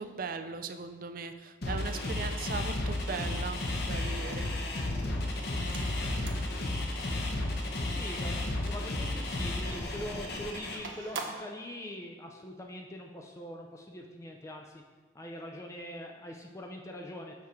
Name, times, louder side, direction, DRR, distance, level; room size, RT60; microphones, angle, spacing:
voice 1, 0.0-4.5, right 4 dB, 45° right, 9 dB, 0.4 m, -38 dB
sound 1, 1.6-10.8, left 1 dB, 55° left, 0.9 m, -33 dB
sound 2, 5.6-8.7 9.6-11.6, right 4 dB, 80° right, 0.8 m, -45 dB
voice 2, 7.9-14.8 15.1-17.3, left 1 dB, 15° left, 2 dB, 0.4 m, -43 dB
6.3 x 5.8 x 4.4 m, 1.4 s
head